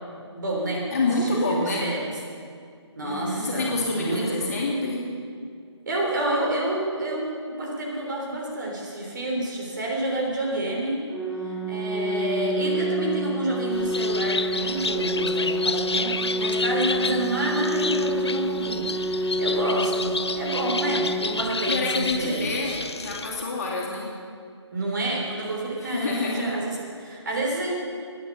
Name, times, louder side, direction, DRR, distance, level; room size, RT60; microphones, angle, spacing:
voice 1, 0.3-0.9 1.2-2.1 3.0-4.5 5.9-11.0 11.4-22.8 24.7-27.7, right 1 dB, 40° right, -2 dB, 3.4 m, -29 dB
voice 2, 0.9-1.8 3.0-5.0 21.7-24.1 25.8-26.5, left 2 dB, 35° left, -4 dB, 2.9 m, -27 dB
Organ, 11.1-22.1, right 1 dB, ahead, 0.7 m, -28 dB
Bird, 13.7-23.4, left 4 dB, 60° left, 0.7 m, -31 dB
16.5 x 9.7 x 7.0 m, 2.2 s
figure-of-eight pair, 155°, 15 cm